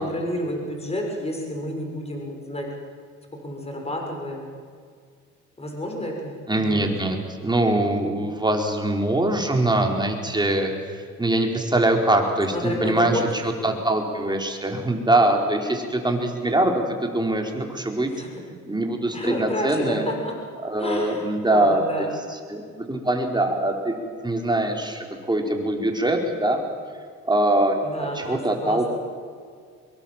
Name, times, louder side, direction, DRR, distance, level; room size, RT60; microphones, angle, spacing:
voice 1, 0.0-2.7 3.4-4.5 5.6-6.9 12.5-13.2 18.1-18.3 19.1-20.3 20.8-21.3 21.5-22.1 27.8-28.9, equal, 20° left, 1 dB, 6.7 m, -30 dB
voice 2, 6.5-18.1 18.5-20.0 20.6-22.1 22.5-26.6 27.2-28.9, right 1 dB, 15° right, 2 dB, 4.5 m, -23 dB
24.5 x 22.5 x 7.5 m, 2.1 s
cardioid pair, 90°, 30 cm